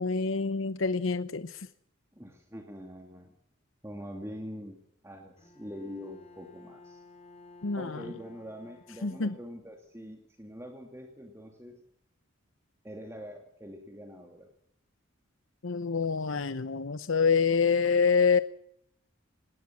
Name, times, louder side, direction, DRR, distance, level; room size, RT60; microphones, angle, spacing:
voice 1, 0.0-1.7 7.6-8.0 9.0-9.3 15.6-18.4, left 5 dB, 80° left, 12 dB, 0.8 m, -26 dB
voice 2, 2.1-3.3 3.8-4.8 5.0-7.0 7.8-11.8 12.8-14.5, equal, 15° right, 2 dB, 2.4 m, -44 dB
Bowed string instrument, 5.4-9.9, left 3 dB, 30° left, 4.7 m, -54 dB
20.5 x 18.5 x 7.4 m, 0.72 s
head